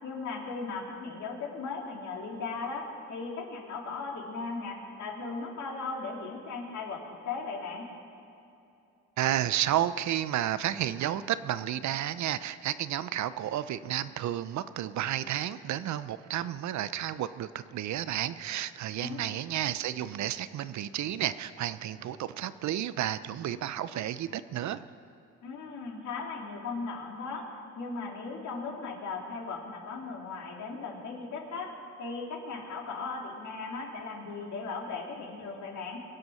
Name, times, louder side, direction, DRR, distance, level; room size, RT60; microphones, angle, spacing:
voice 1, 0.0-7.9 19.0-19.3 25.4-27.5 27.7-31.7 32.0-36.0, left 4 dB, 70° left, -1 dB, 3.0 m, -37 dB
voice 2, 9.2-24.9, right 12 dB, 70° right, 14 dB, 0.6 m, -31 dB
23.0 x 7.8 x 6.4 m, 2.7 s
cardioid pair, 90°, 30 cm